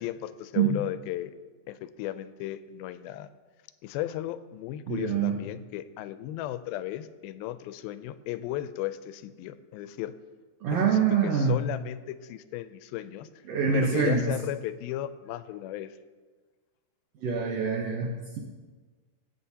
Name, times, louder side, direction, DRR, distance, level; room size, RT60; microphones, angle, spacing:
voice 1, 0.0-1.3 1.7-3.3 3.8-10.1 10.7-13.3 13.7-15.9, left 13 dB, 85° left, 12 dB, 2.4 m, -35 dB
voice 2, 4.9-5.4 10.6-11.6 13.5-14.3 17.2-18.4, right 6 dB, 75° right, -1 dB, 1.4 m, -25 dB
21.5 x 8.5 x 2.8 m, 1.4 s
omnidirectional pair, 4.3 m